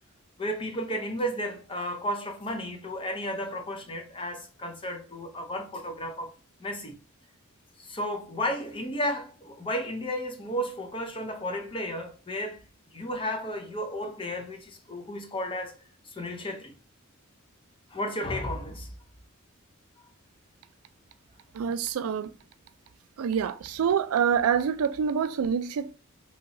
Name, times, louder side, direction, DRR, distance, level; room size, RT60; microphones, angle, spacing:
voice 1, 0.4-6.3 6.6-7.0 7.8-12.6 12.9-15.8 16.1-16.7 17.9-18.9, equal, 25° left, 0.6 m, -33 dB
voice 2, 21.5-22.3 23.2-25.9, right 7 dB, 80° right, 0.3 m, -26 dB
3.0 x 2.8 x 2.5 m
head